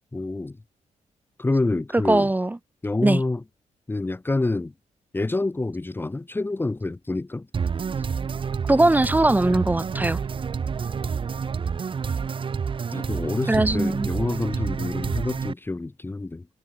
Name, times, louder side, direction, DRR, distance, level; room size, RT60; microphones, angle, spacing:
voice 1, 0.1-0.6 1.4-2.3 2.8-3.4 3.9-4.7 5.1-7.5 11.0-11.1 12.9-16.5, left 2 dB, 15° left, 1.4 m, -27 dB
voice 2, 1.9-2.6 3.0-3.2 8.7-10.2 13.5-14.1, right 2 dB, 15° right, 2.0 m, -20 dB
sound 1, 7.5-15.5, right 6 dB, 40° right, 1.2 m, -28 dB
cardioid pair, 110°, 13 cm